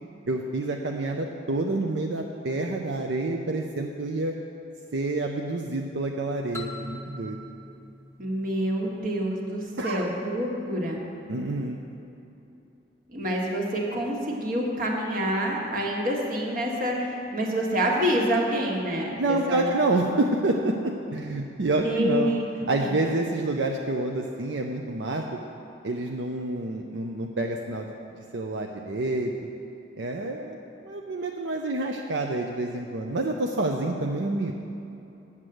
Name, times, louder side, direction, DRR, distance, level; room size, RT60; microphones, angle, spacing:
voice 1, 0.3-4.4 4.9-7.4 9.8-10.0 11.3-11.8 19.2-22.4 22.7-25.4 25.8-29.3 30.0-34.5, right 2 dB, 85° right, 2 dB, 0.6 m, -28 dB
sound 1, 6.5-9.2, left 1 dB, 15° left, 0.7 m, -41 dB
voice 2, 8.2-11.0 13.1-19.7 21.8-22.9, equal, 50° right, -1 dB, 1.5 m, -27 dB
8.2 x 7.4 x 7.7 m, 2.8 s
head